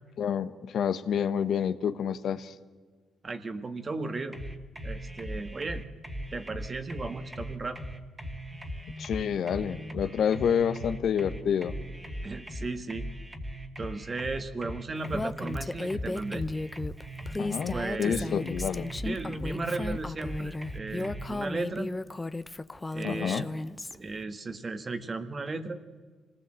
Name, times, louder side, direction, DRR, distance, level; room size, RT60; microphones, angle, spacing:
voice 1, 0.2-2.5 9.0-11.7 17.4-18.9 23.0-23.5, left 8 dB, 65° left, 10 dB, 1.1 m, -28 dB
voice 2, 3.2-4.4 4.8-5.8 6.3-7.8 12.2-13.0 13.8-16.5 17.7-18.3 19.0-21.9 22.9-23.4 23.9-25.8, right 3 dB, 35° right, 8 dB, 1.6 m, -35 dB
sound 1, 4.3-21.3, equal, 15° right, 2.2 m, -39 dB
Female speech woman speaking, 15.1-24.0, left 2 dB, 15° left, 0.8 m, -34 dB
26.0 x 19.0 x 7.6 m, 1.5 s
cardioid pair, 90°, 0 cm